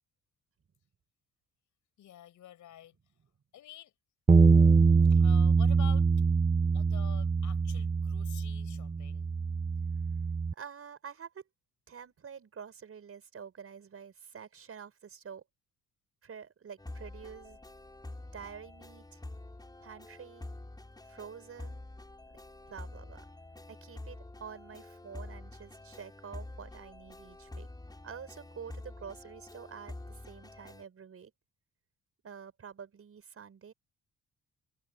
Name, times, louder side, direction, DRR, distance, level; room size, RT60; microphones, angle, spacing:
voice 1, 2.0-2.9 3.5-3.9 5.1-6.1 6.7-9.3, left 12 dB, 75° left, 7.4 m, -49 dB
sound 1, 4.3-10.5, right 4 dB, 20° right, 0.9 m, -24 dB
voice 2, 10.5-11.4 11.9-15.4 16.2-17.6 18.3-19.2 19.8-20.5 21.0-21.8 22.3-22.4 22.7-23.3 23.7-27.7 28.0-31.3 32.2-33.7, right 7 dB, 50° right, 6.3 m, -48 dB
sound 2, 16.8-30.8, left 2 dB, 15° left, 6.2 m, -47 dB
cardioid pair, 90°, 30 cm